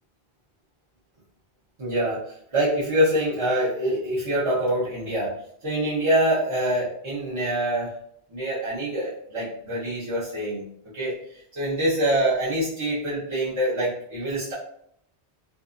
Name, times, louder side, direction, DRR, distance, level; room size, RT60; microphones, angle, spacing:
voice 1, 1.8-2.2 2.5-5.4 5.6-7.9 8.3-10.7 10.9-11.2 11.5-14.5, right 1 dB, 35° right, -10 dB, 0.6 m, -25 dB
2.6 x 2.3 x 2.4 m, 0.69 s
omnidirectional pair, 1.1 m